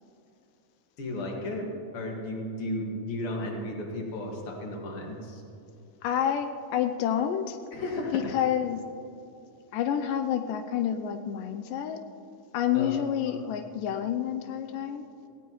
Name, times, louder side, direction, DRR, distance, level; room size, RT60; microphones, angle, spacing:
voice 1, 1.0-5.4 7.7-8.2 12.7-12.9 13.3-13.4, left 1 dB, 45° left, 0 dB, 2.5 m, -34 dB
voice 2, 6.0-7.6 8.1-8.8 9.7-12.0 12.5-15.1, left 9 dB, 90° left, 8 dB, 2.3 m, -28 dB
18.5 x 17.0 x 3.1 m, 2.7 s
omnidirectional pair, 3.8 m